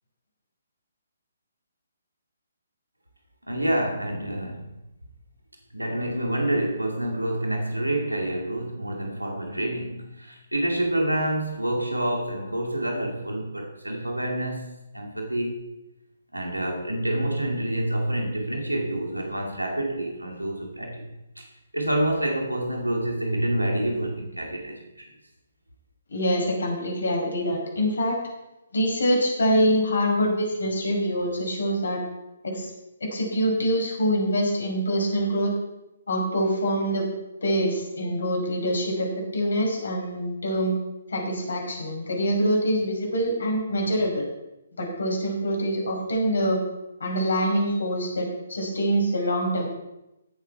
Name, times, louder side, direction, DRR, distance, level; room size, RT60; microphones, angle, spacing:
voice 1, 3.5-4.7 5.7-15.6 16.3-21.5 21.7-25.1, right 1 dB, 85° right, 1 dB, 2.2 m, -28 dB
voice 2, 26.1-28.2 28.7-32.0 32.4-32.7 33.0-35.5 36.1-37.0 37.4-40.7 41.1-44.2 44.8-46.6 47.0-49.7, equal, 65° left, 0 dB, 5.2 m, -25 dB
16.5 x 7.5 x 4.6 m, 0.92 s
figure-of-eight pair, 135°, 0 cm